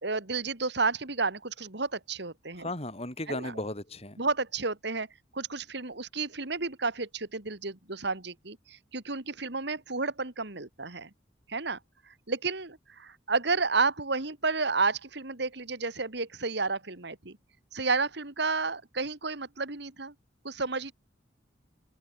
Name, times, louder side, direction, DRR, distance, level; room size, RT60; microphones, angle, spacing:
voice 1, 0.0-2.7 3.3-3.5 4.2-5.1 5.3-11.1 11.5-11.8 12.3-17.4 17.7-20.1 20.4-20.9, right 4 dB, 65° right, 2.5 m, -31 dB
voice 2, 2.6-4.2, left 1 dB, 35° left, 6.2 m, -36 dB
head